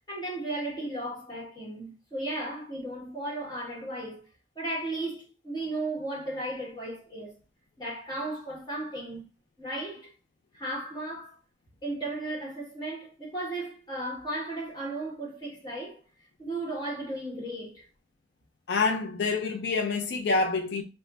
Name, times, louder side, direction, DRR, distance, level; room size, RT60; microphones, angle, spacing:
voice 1, 0.1-4.2 4.5-7.3 7.8-9.2 9.6-10.1 10.5-11.4 11.8-16.0 16.4-17.9, right 1 dB, 25° left, 1.3 m, -35 dB
voice 2, 18.7-20.8, left 3 dB, 75° left, 0.4 m, -27 dB
3.2 x 2.1 x 3.8 m
head